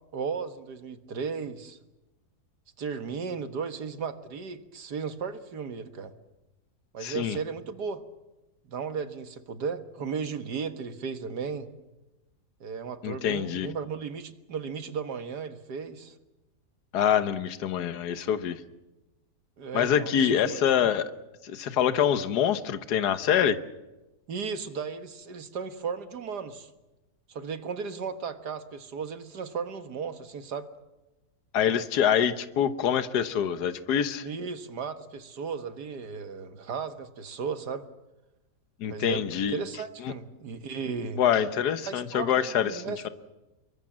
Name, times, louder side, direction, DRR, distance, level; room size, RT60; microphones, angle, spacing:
voice 1, 0.1-1.8 2.8-6.1 6.9-8.0 8.7-11.7 12.6-16.2 19.6-20.6 24.3-26.7 27.3-30.7 34.2-37.9 38.9-41.2 41.9-43.0, right 5 dB, 85° right, 10 dB, 2.1 m, -35 dB
voice 2, 7.0-7.4 13.0-13.7 16.9-18.6 19.7-21.1 21.4-23.6 31.5-34.3 38.8-39.6 41.2-43.1, left 9 dB, 80° left, 12 dB, 1.6 m, -25 dB
26.0 x 22.5 x 7.5 m, 1.0 s
omnidirectional pair, 1.7 m